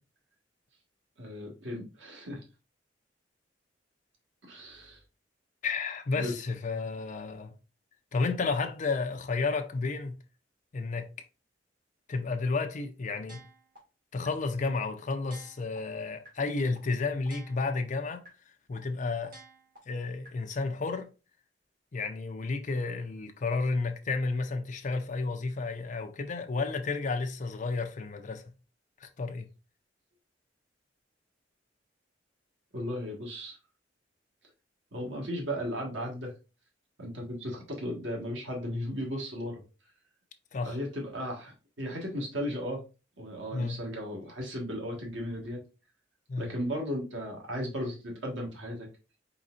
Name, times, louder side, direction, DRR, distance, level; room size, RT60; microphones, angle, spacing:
voice 1, 1.2-2.4 4.5-5.0 6.2-6.3 32.7-33.6 34.9-36.3 37.0-39.6 40.6-42.8 43.2-45.6 46.4-48.9, equal, 85° right, 1.5 m, -35 dB
voice 2, 5.6-7.5 8.1-10.2 10.7-11.1 12.1-13.4 14.1-18.2 18.7-19.4 19.9-21.1 21.9-28.5 29.0-29.5 40.5-40.8 43.5-43.8 46.3-46.5, left 3 dB, 45° left, 0.5 m, -32 dB
sound 1, 13.3-13.8 14.2-14.3 14.7-14.8 15.2-15.8 16.2-16.3 16.7-16.8 17.2-17.8 18.2-18.3 18.7-18.8 19.2-19.8 20.2-20.3, right 2 dB, 50° right, 1.8 m, -51 dB
4.1 x 4.0 x 2.4 m
head